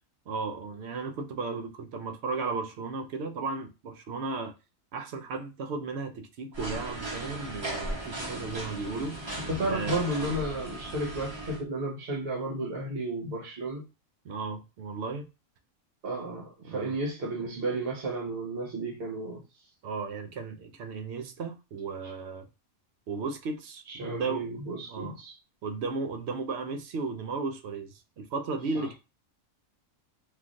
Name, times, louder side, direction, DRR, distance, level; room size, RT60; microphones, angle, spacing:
voice 1, 0.3-4.6 4.9-9.2 9.7-10.0 14.2-15.3 16.6-17.0 19.8-22.5 23.1-24.6 24.9-25.2 25.6-28.9, right 4 dB, 65° right, 0.7 m, -35 dB
sound 1, 6.5-11.6, right 1 dB, 25° right, 0.7 m, -37 dB
voice 2, 9.5-13.8 16.0-19.4 23.9-25.3 28.7-28.9, right 2 dB, 50° right, 1.2 m, -33 dB
3.1 x 2.4 x 2.5 m
omnidirectional pair, 1.4 m